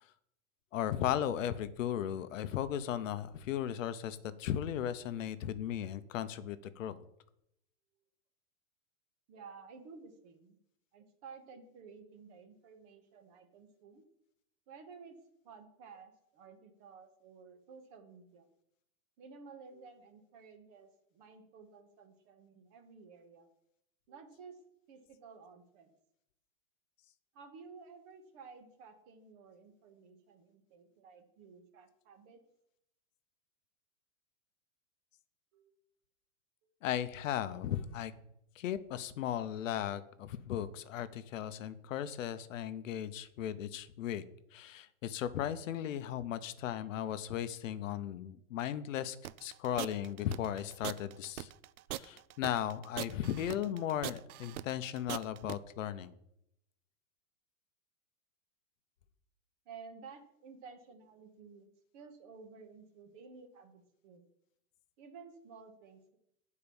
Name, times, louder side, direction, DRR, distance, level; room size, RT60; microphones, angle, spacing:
voice 1, 0.7-7.0 36.8-38.1 38.6-44.2 44.5-49.2 49.4-51.5 51.9-56.1, left 10 dB, 65° left, 13 dB, 0.7 m, -36 dB
voice 2, 9.3-10.6 10.9-14.0 14.7-15.2 15.4-18.5 19.2-23.5 24.1-24.6 24.9-25.9 27.3-32.4 35.5-35.8 59.7-64.3 65.0-66.2, right 5 dB, 25° right, 7 dB, 0.9 m, -54 dB
sound 1, 49.2-55.6, right 14 dB, 90° right, 0.6 m, -41 dB
8.6 x 4.7 x 6.9 m, 0.78 s
supercardioid pair, 170°, 42 cm